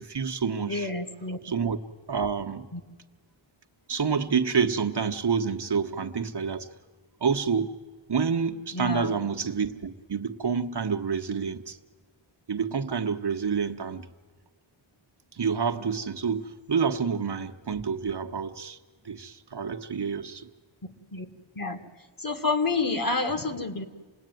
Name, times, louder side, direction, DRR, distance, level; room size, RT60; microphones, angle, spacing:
voice 1, 0.0-0.9 1.4-1.8 2.1-2.7 3.9-6.7 7.2-7.8 8.1-11.8 12.5-14.1 15.3-18.8 19.0-20.5, right 6 dB, 55° right, 1.1 m, -28 dB
voice 2, 0.7-1.4 2.7-2.8 8.7-9.1 20.8-21.3 21.6-21.8 22.2-23.9, left 3 dB, 45° left, 2.0 m, -29 dB
27.5 x 19.5 x 9.2 m
wide cardioid pair, 100°, 48 cm